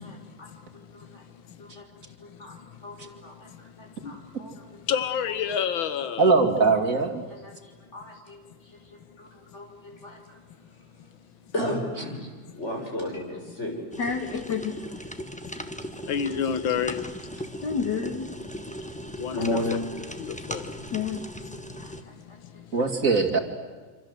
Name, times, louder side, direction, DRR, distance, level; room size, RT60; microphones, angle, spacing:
voice 1, 0.0-1.2 1.6-1.9 2.2-4.8 7.3-11.1 11.5-13.7 16.3-16.4 19.3-19.8 21.8-22.4, left 1 dB, 35° left, 2 dB, 5.4 m, -36 dB
voice 2, 4.9-6.3 16.1-17.0 19.2-19.6 20.2-20.6, left 8 dB, 90° left, 13 dB, 1.9 m, -28 dB
voice 3, 6.2-7.2 22.7-23.4, right 4 dB, 45° right, 3 dB, 2.7 m, -21 dB
sound 1, 13.9-22.0, equal, 5° left, 1.1 m, -38 dB
voice 4, 14.0-15.0 17.6-18.3 20.9-21.2, left 6 dB, 60° left, 7 dB, 2.3 m, -29 dB
27.0 x 26.5 x 7.9 m, 1.4 s
omnidirectional pair, 2.1 m